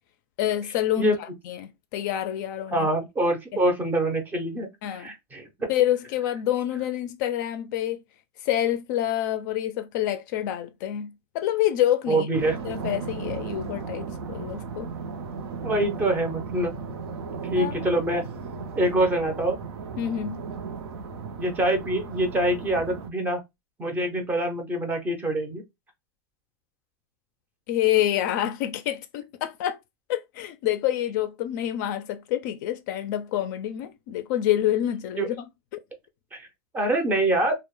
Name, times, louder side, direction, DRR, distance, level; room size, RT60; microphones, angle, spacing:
voice 1, 0.4-2.9 3.5-3.6 4.8-5.1 5.7-8.0 8.4-12.3 12.6-14.9 17.6-18.0 20.0-20.4 27.7-29.8 30.1-35.5, left 12 dB, 45° left, 0.4 m, -27 dB
voice 2, 2.7-4.7 4.9-5.7 12.1-12.6 15.6-16.7 17.5-18.2 18.7-19.6 21.4-23.4 23.8-25.6 35.2-35.3 36.3-36.5 36.7-37.5, right 1 dB, 15° right, 0.5 m, -25 dB
sound 1, 12.3-23.1, right 5 dB, 85° right, 0.5 m, -36 dB
2.1 x 2.0 x 3.0 m
supercardioid pair, 145°, 13 cm